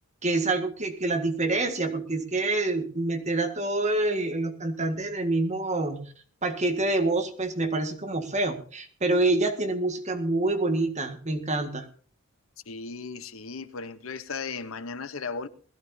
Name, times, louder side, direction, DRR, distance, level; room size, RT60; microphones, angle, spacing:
voice 1, 0.2-6.0 6.4-11.8, right 2 dB, 35° right, 1.8 m, -27 dB
voice 2, 12.7-15.5, left 4 dB, 75° left, 0.9 m, -36 dB
20.5 x 14.0 x 2.8 m
head